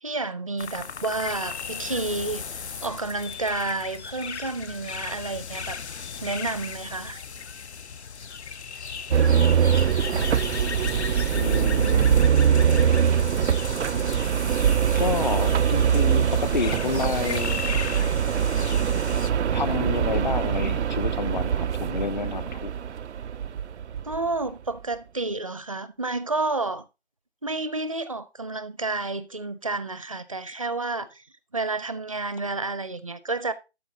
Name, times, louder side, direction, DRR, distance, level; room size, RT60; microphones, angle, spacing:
voice 1, 0.0-5.8 6.2-7.2 24.0-26.8 27.4-31.2 31.5-33.5, right 3 dB, 30° right, 0.5 m, -30 dB
sound 1, 0.6-19.3, left 6 dB, 75° left, 0.8 m, -36 dB
sound 2, 9.1-24.3, right 8 dB, 80° right, 0.5 m, -23 dB
voice 2, 11.3-13.2 14.9-17.6 19.5-22.7, left 5 dB, 45° left, 0.5 m, -30 dB
13.0 x 4.4 x 3.8 m
figure-of-eight pair, 155°, 34 cm